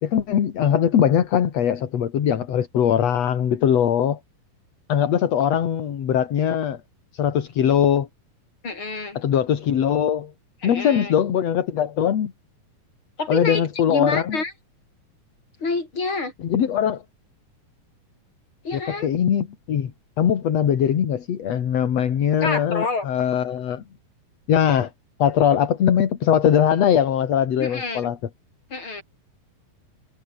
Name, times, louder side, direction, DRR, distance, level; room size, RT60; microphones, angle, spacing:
voice 1, 0.0-4.2 4.9-6.8 7.1-8.1 9.2-10.3 10.6-12.3 13.3-14.4 16.4-17.0 18.7-19.9 20.2-23.8 24.5-24.9 25.2-28.2, left 9 dB, 50° left, 2.7 m, -21 dB
voice 2, 8.6-9.2 10.6-11.1 13.2-14.5 15.6-16.3 18.6-19.1 22.4-23.1 27.6-28.1 28.7-29.0, left 3 dB, 35° left, 6.4 m, -28 dB
omnidirectional pair, 4.2 m